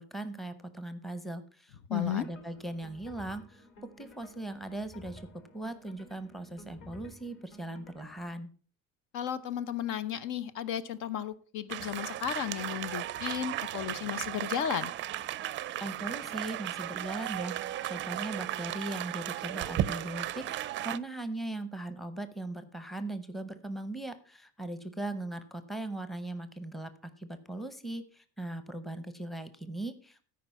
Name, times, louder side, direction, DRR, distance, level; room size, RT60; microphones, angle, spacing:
voice 1, 0.0-3.7 4.0-5.3 5.5-8.5 15.8-26.9 27.2-30.2, right 2 dB, ahead, 10 dB, 0.7 m, -39 dB
voice 2, 1.9-2.2 9.1-14.9, left 10 dB, 70° left, 14 dB, 0.9 m, -34 dB
sound 1, 2.0-8.3, left 1 dB, 40° left, 2.8 m, -53 dB
sound 2, 11.7-21.0, right 13 dB, 40° right, 0.4 m, -35 dB
13.5 x 5.2 x 5.7 m, 0.42 s
cardioid pair, 150°, 31 cm